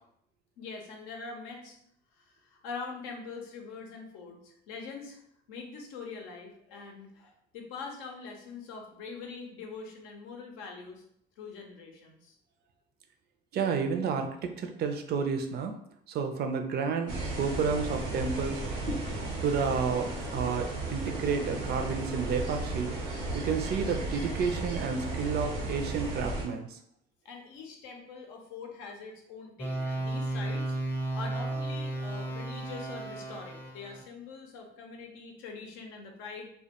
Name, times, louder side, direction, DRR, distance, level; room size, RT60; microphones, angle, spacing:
voice 1, 0.6-1.8 2.1-5.2 5.5-11.0 11.4-12.4 27.2-36.5, left 4 dB, 80° left, 2 dB, 0.6 m, -43 dB
voice 2, 13.5-15.8 16.1-18.6 19.4-22.9 23.3-26.8, right 5 dB, 50° right, 6 dB, 0.4 m, -31 dB
sound 1, 17.1-26.4, right 2 dB, 90° right, 0.6 m, -34 dB
sound 2, 29.6-34.0, right 2 dB, 10° left, 0.5 m, -34 dB
2.2 x 2.1 x 2.8 m, 0.70 s
supercardioid pair, 70°, 21 cm